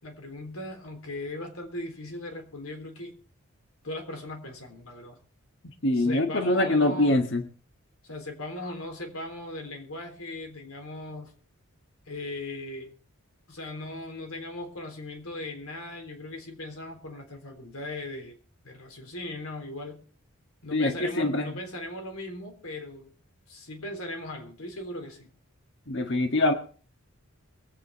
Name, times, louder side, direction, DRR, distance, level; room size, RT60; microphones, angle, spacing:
voice 1, 0.0-3.1 3.8-5.2 5.9-7.1 8.0-11.3 12.1-12.9 13.5-18.4 18.6-20.0 20.6-23.1 23.5-25.3, left 1 dB, 75° left, 4 dB, 3.7 m, -38 dB
voice 2, 5.8-7.4 20.7-21.5 25.9-26.5, left 2 dB, 55° left, 6 dB, 1.5 m, -24 dB
23.0 x 8.7 x 4.2 m, 0.42 s
head